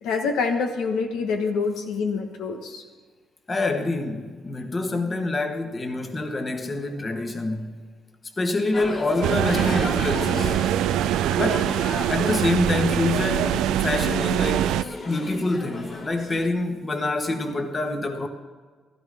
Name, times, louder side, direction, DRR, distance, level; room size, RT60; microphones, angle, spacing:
voice 1, 0.0-2.8, left 4 dB, 85° left, 1.2 m, -26 dB
voice 2, 3.5-7.8 8.4-10.6 11.3-11.7 12.1-18.3, left 2 dB, 30° left, 1.4 m, -26 dB
Pub in Cambridge, 8.7-16.5, left 2 dB, 50° left, 2.6 m, -35 dB
sound 1, 9.2-14.8, right 12 dB, 90° right, 0.3 m, -23 dB
15.5 x 13.0 x 3.6 m
cardioid pair, 90°, 0 cm